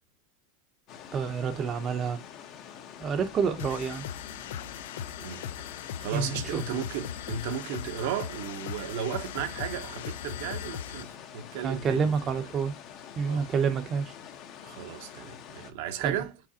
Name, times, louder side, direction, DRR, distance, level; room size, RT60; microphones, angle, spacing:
sound 1, 0.9-15.7, left 8 dB, 40° left, 0.8 m, -46 dB
voice 1, 1.1-2.2 3.0-4.0 6.1-6.6 11.6-12.7 13.2-14.1 16.0-16.1, right 6 dB, 25° right, 0.6 m, -28 dB
sound 2, 3.6-11.2, left 9 dB, 75° left, 0.4 m, -39 dB
voice 2, 6.0-12.5 13.3-13.5 14.6-16.4, right 8 dB, 60° right, 0.7 m, -35 dB
4.8 x 3.9 x 2.7 m
supercardioid pair, 145°, 0 cm